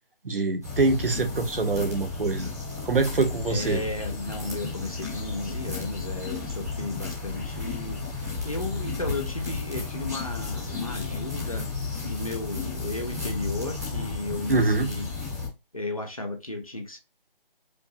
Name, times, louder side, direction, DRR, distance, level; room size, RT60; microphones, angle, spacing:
voice 1, 0.2-2.5 2.8-3.8 14.5-14.9, right 3 dB, 70° right, 1.1 m, -24 dB
sound 1, 0.6-15.5, left 4 dB, 15° right, 1.3 m, -33 dB
voice 2, 3.5-11.7 12.0-15.1 15.7-17.0, left 2 dB, 40° left, 0.7 m, -34 dB
5.1 x 2.4 x 2.8 m
figure-of-eight pair, 175°, 29 cm